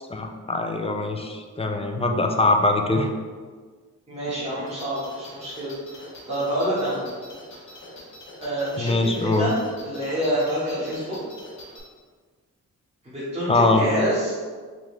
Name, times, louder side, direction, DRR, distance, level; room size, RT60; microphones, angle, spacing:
voice 1, 0.1-3.1 8.8-9.5 13.5-13.9, left 2 dB, 20° left, 3 dB, 0.4 m, -22 dB
voice 2, 4.1-7.0 8.4-9.5 9.8-11.2 13.0-14.3, right 1 dB, 20° right, -10 dB, 1.3 m, -27 dB
sound 1, 4.7-11.8, left 1 dB, 60° left, 1.0 m, -44 dB
3.8 x 3.1 x 3.1 m, 1.5 s
wide cardioid pair, 100°, 32 cm